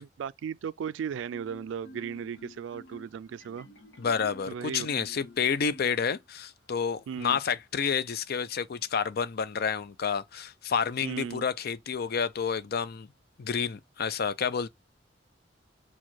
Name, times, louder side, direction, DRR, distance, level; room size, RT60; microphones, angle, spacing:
voice 1, 0.0-3.7 4.5-5.1 7.1-7.4 11.0-11.5, right 7 dB, 80° right, 0.3 m, -36 dB
Marimba xylophone, 1.8-6.5, equal, 80° left, 1.0 m, -50 dB
voice 2, 4.0-13.1 13.4-14.7, left 6 dB, 55° left, 0.4 m, -29 dB
4.6 x 2.3 x 4.3 m
head